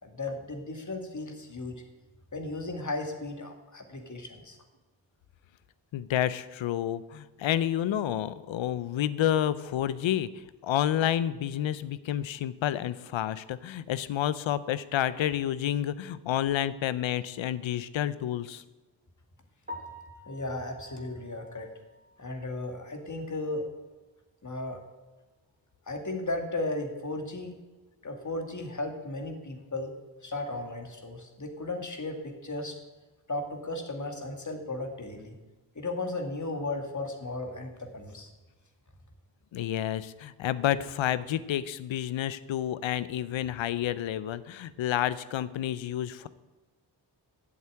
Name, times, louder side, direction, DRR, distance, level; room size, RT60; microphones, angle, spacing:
voice 1, 0.0-1.7 2.3-4.6 20.3-21.7 22.2-23.6 24.4-24.8 25.9-27.5 28.0-29.9 30.2-32.8 33.3-35.3 35.8-38.3, left 2 dB, 40° left, 4 dB, 2.1 m, -35 dB
voice 2, 5.9-10.3 10.6-18.6 39.5-46.3, left 11 dB, 85° left, 16 dB, 0.6 m, -29 dB
Piano, 19.7-23.6 24.0-24.1 24.6-24.7 25.1-25.2 28.2-28.3 36.8-37.1, left 1 dB, 20° right, 2.9 m, -48 dB
8.4 x 7.3 x 8.5 m, 1.2 s
cardioid pair, 45°, 45 cm